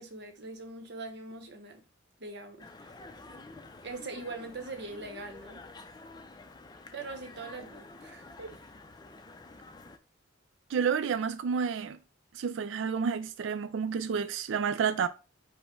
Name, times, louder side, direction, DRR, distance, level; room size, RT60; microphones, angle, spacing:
voice 1, 0.0-1.8 2.2-3.0 3.8-5.6 6.9-8.6, right 3 dB, 60° right, 0.9 m, -42 dB
sound 1, 2.6-10.0, left 3 dB, 20° left, 0.4 m, -49 dB
voice 2, 10.7-12.0 12.3-15.1, right 6 dB, 80° right, 0.3 m, -30 dB
5.5 x 2.1 x 4.4 m
head